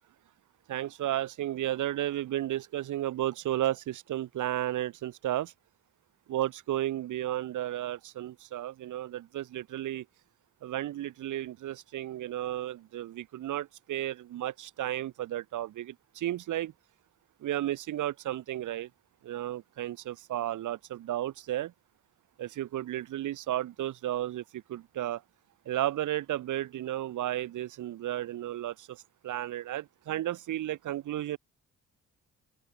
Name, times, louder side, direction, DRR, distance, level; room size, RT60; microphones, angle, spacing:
voice 1, 0.7-5.5 6.3-10.0 10.6-16.7 17.4-18.9 19.2-21.7 22.4-25.2 25.7-31.4, right 13 dB, 80° right, 5.9 m, -33 dB
cardioid pair, 90°, 30 cm